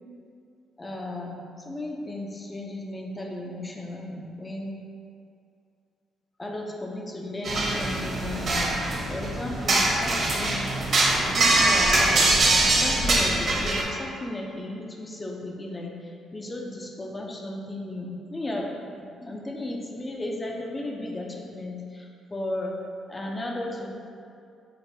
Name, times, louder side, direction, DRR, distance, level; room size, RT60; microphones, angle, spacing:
voice 1, 0.8-1.4 1.7-4.8 6.4-8.7 9.1-10.7 11.2-12.3 12.7-15.9 16.3-18.7 19.2-22.1 22.3-22.8 23.1-23.9, left 1 dB, 25° left, 0 dB, 0.6 m, -34 dB
sound 1, 7.4-13.8, right 2 dB, 50° right, 1.0 m, -23 dB
6.4 x 2.5 x 2.7 m, 2.4 s
cardioid pair, 90°, 0 cm